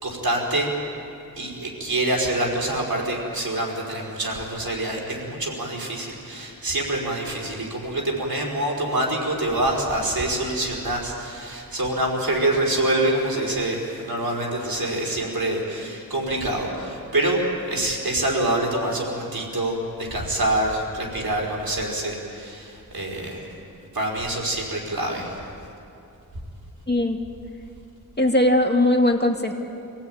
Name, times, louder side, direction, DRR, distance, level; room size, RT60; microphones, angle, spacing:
voice 1, 0.0-0.7 1.4-17.4 17.7-23.5 23.9-25.4, right 1 dB, 90° right, -2 dB, 4.8 m, -26 dB
voice 2, 26.9-27.2 28.2-29.6, left 1 dB, 30° left, 3 dB, 2.2 m, -19 dB
25.5 x 17.5 x 9.2 m, 2.7 s
wide cardioid pair, 60°, 34 cm